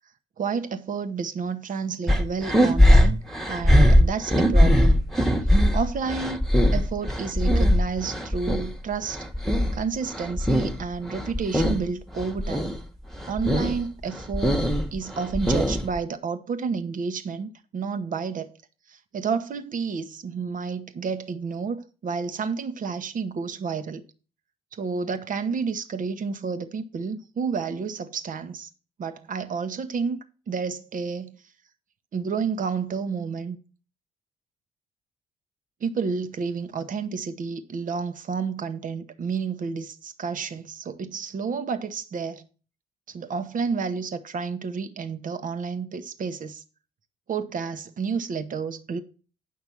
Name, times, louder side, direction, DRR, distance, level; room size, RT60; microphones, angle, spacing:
voice 1, 0.4-3.2 3.5-5.0 5.7-6.4 6.7-9.2 9.7-12.7 13.3-18.5 18.9-24.0 24.7-28.7 29.0-31.4 32.1-33.6 35.8-42.5 43.1-46.6 47.3-49.0, right 5 dB, 45° right, 1.1 m, -30 dB
sound 1, 2.1-8.7 9.0-10.8 11.1-11.8 12.2-12.8 13.1-13.8 14.1-16.0, equal, ahead, 1.5 m, -20 dB
9.4 x 5.8 x 5.9 m
figure-of-eight pair, 45°, 19 cm